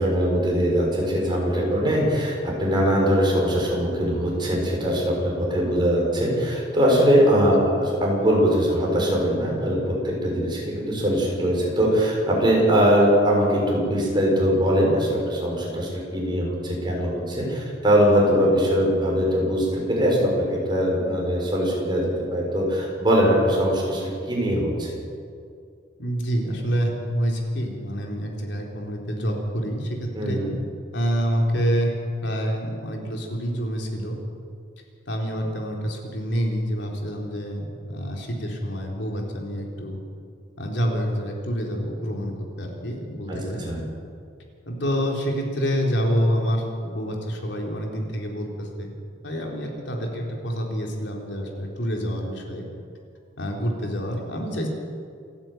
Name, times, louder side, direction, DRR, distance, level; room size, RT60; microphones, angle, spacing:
voice 1, 0.0-25.0 30.1-30.5 43.3-43.4 43.7-43.8, equal, 25° right, -3 dB, 6.7 m, -21 dB
voice 2, 26.0-30.4 30.9-31.9 32.2-34.2 35.1-40.0 40.6-43.8 44.7-48.9 49.2-52.7 53.4-54.7, equal, 65° left, 0 dB, 3.8 m, -27 dB
28.0 x 11.0 x 9.3 m, 2.3 s
head